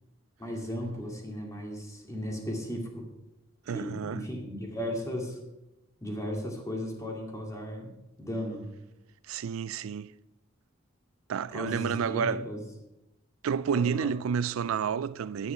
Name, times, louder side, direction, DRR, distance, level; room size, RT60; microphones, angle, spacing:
voice 1, 0.4-3.1 3.7-5.4 6.0-7.9 8.2-8.7 11.5-12.6 13.7-14.1, equal, 15° left, 2.2 m, -36 dB
voice 2, 3.7-4.2 9.3-10.1 11.3-12.5 13.4-15.5, right 7 dB, 75° right, 0.4 m, -30 dB
9.8 x 9.5 x 5.7 m
head